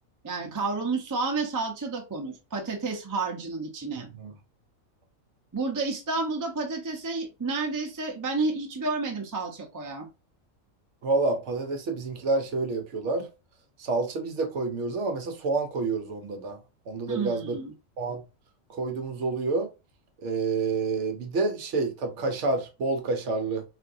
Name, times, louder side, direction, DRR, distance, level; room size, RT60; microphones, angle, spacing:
voice 1, 0.2-4.1 5.5-10.1 17.1-17.7, right 3 dB, 25° right, 0.4 m, -30 dB
voice 2, 11.0-13.3 13.8-16.6 16.9-17.6 18.0-18.2 18.7-19.7 20.2-23.6, right 3 dB, 65° right, 0.9 m, -28 dB
3.5 x 2.6 x 2.5 m
omnidirectional pair, 1.5 m